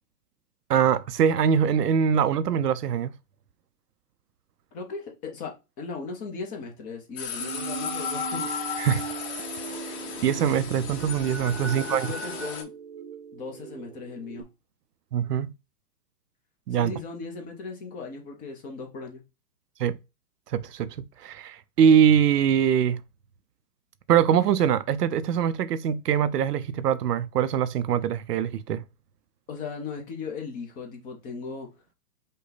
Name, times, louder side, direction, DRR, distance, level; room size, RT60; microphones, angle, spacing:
voice 1, 0.7-3.1 8.8-9.0 10.2-12.1 15.1-15.5 16.7-16.9 19.8-20.0 20.5-21.0 21.2-23.0 24.1-28.8, right 8 dB, 85° right, 0.7 m, -23 dB
voice 2, 4.7-8.4 11.7-12.7 13.3-14.5 16.7-19.2 29.5-31.7, left 4 dB, 20° left, 0.7 m, -37 dB
sound 1, 7.2-12.6, left 5 dB, 45° left, 1.2 m, -34 dB
sound 2, 7.4-14.4, right 8 dB, 40° right, 0.5 m, -40 dB
5.3 x 2.2 x 4.1 m
hypercardioid pair, 140°, 47 cm